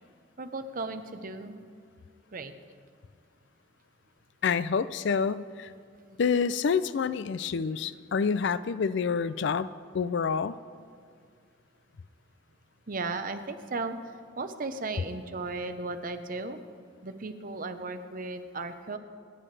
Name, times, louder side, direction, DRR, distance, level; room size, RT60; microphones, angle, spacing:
voice 1, 0.4-1.6 2.3-2.5 12.9-16.6 17.0-19.0, right 3 dB, 45° right, 9 dB, 0.8 m, -36 dB
voice 2, 4.4-5.7 6.2-9.7 9.9-10.6, left 6 dB, 60° left, 15 dB, 0.4 m, -27 dB
29.0 x 9.8 x 3.3 m, 2.2 s
head